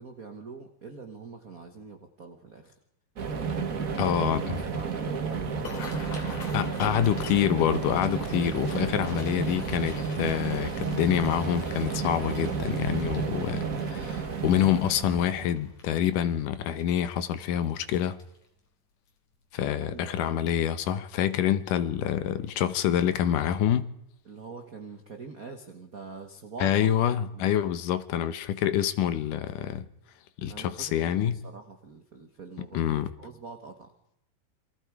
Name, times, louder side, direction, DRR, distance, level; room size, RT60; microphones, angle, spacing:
voice 1, 0.0-2.7 3.4-4.2 4.6-7.1 8.5-9.2 19.8-20.5 24.2-26.9 27.3-27.5 30.5-32.8 33.2-33.9, right 4 dB, 90° right, 0.7 m, -44 dB
sound 1, 3.2-15.5, right 5 dB, 60° right, 0.9 m, -31 dB
voice 2, 4.0-4.7 6.5-18.2 19.5-23.9 26.6-29.9 30.4-31.4 32.7-33.1, left 10 dB, 75° left, 2.5 m, -27 dB
sound 2, 5.5-18.6 19.1-19.4 19.7-20.1 20.5-20.7 21.9-22.1 22.4-22.6 23.0-23.1, left 4 dB, 55° left, 3.7 m, -47 dB
28.5 x 23.0 x 4.8 m
omnidirectional pair, 3.9 m